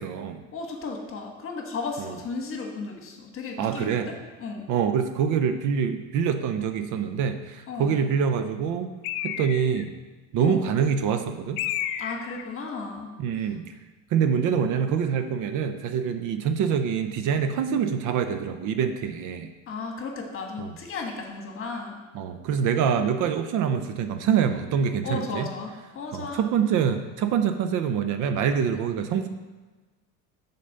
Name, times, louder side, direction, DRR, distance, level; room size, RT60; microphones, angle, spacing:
voice 1, 0.0-0.4 3.6-4.1 4.7-8.9 9.2-9.9 10.3-11.6 13.2-13.6 14.1-19.5 20.6-20.7 22.1-25.4 26.1-29.3, right 7 dB, 50° right, 8 dB, 0.7 m, -25 dB
voice 2, 0.5-4.7 7.7-8.1 10.4-10.7 12.0-13.1 19.7-22.0 25.0-26.5, left 4 dB, 35° left, 2 dB, 1.4 m, -35 dB
Bird, 9.0-9.9 11.6-12.5, left 11 dB, 65° left, 0.5 m, -31 dB
6.6 x 4.2 x 6.6 m, 1.2 s
supercardioid pair, 120°, 38 cm